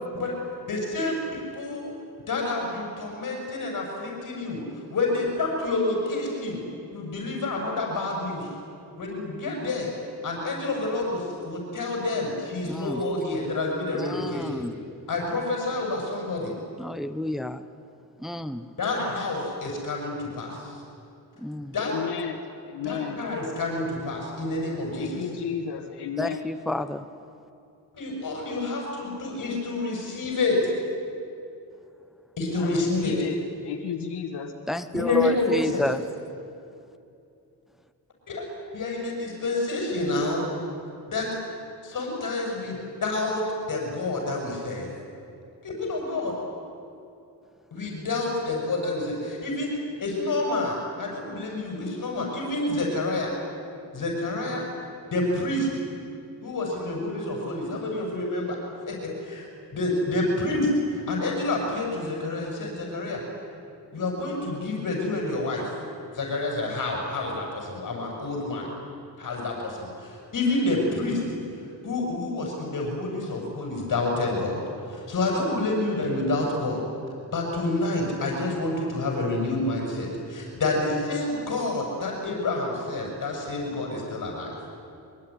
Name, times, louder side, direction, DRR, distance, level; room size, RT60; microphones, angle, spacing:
voice 1, 0.7-1.9 2.3-4.6 4.9-6.6 6.9-8.5 9.0-9.9 10.2-14.6 15.1-16.5 18.8-20.8 21.7-21.9 22.8-25.2 27.9-30.6 32.4-33.1 34.9-35.8 38.3-38.4 38.7-40.5 41.1-41.3 41.8-44.9 45.6-46.4 47.7-49.7 50.0-53.3 53.9-54.7 55.1-55.7 56.4-58.6 58.9-63.2 63.9-65.7 66.1-68.7 69.2-71.2 71.8-74.6 74.9-76.8 77.3-84.6, left 2 dB, 50° left, 0 dB, 7.0 m, -28 dB
voice 2, 12.6-13.0 13.9-14.8 16.8-17.6 18.2-18.7 21.4-21.7 26.2-27.0 34.7-36.0, left 1 dB, ahead, 9 dB, 1.0 m, -30 dB
voice 3, 21.8-23.2 24.9-26.4 32.5-34.5, left 7 dB, 85° left, 4 dB, 1.9 m, -33 dB
23.5 x 23.5 x 10.0 m, 2.6 s
cardioid pair, 105°, 39 cm